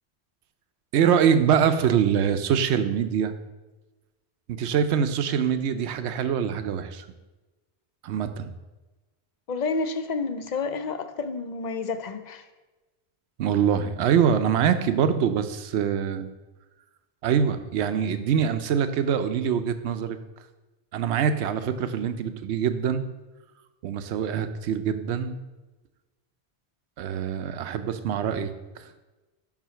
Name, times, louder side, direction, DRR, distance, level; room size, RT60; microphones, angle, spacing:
voice 1, 0.9-3.3 4.5-7.1 8.0-8.5 13.4-16.3 17.2-20.2 20.9-23.0 23.8-25.4 27.0-28.5 28.8-28.9, right 8 dB, 80° right, 10 dB, 0.9 m, -24 dB
voice 2, 9.5-12.5, left 4 dB, 55° left, 9 dB, 0.5 m, -30 dB
5.7 x 4.8 x 5.6 m, 1.1 s
omnidirectional pair, 1.1 m